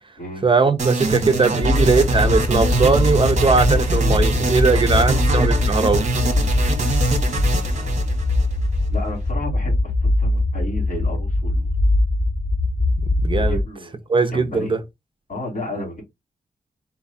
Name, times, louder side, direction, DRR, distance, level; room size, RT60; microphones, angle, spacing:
voice 1, 0.4-6.0 13.2-13.6 14.1-14.8, right 4 dB, 35° right, 0.6 m, -19 dB
sound 1, 0.8-8.9, right 3 dB, 55° right, 1.0 m, -24 dB
sound 2, 1.6-13.6, left 2 dB, 20° left, 0.6 m, -21 dB
voice 2, 4.7-5.6 7.4-8.2 8.9-11.7 13.5-14.0 14.3-14.7 15.3-16.0, left 1 dB, 60° left, 2.9 m, -33 dB
4.0 x 2.4 x 4.1 m
wide cardioid pair, 105°, 15 cm